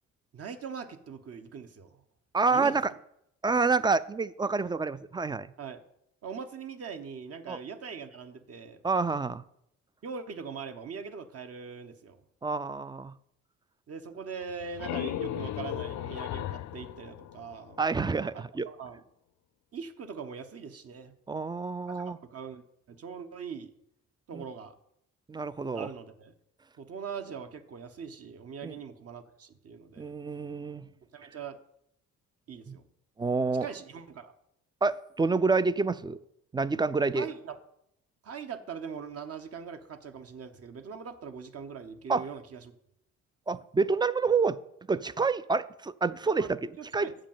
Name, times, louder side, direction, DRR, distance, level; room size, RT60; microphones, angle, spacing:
voice 1, 0.3-2.0 2.5-2.8 5.6-5.8 6.2-8.8 10.0-12.2 13.9-17.8 18.3-19.0 19.7-21.1 21.9-22.6 22.9-23.7 24.3-24.7 25.7-26.3 26.8-30.1 31.1-31.6 32.5-32.8 33.6-34.3 37.1-37.6 38.2-42.7 46.4-47.2, right 6 dB, 50° right, 8 dB, 1.0 m, -41 dB
voice 2, 2.3-2.9 3.4-5.5 7.5-7.6 8.8-9.4 12.4-13.1 17.8-18.7 21.3-22.2 24.3-24.4 25.3-25.9 28.6-28.7 30.0-30.9 32.7-32.8 33.2-33.7 34.8-36.2 36.5-37.3 42.1-42.3 43.5-44.6 44.9-47.1, right 4 dB, 15° right, 16 dB, 0.3 m, -28 dB
sound 1, 14.4-18.1, left 12 dB, 70° left, 0.5 m, -36 dB
7.4 x 5.2 x 7.2 m, 0.75 s
cardioid pair, 90°, 30 cm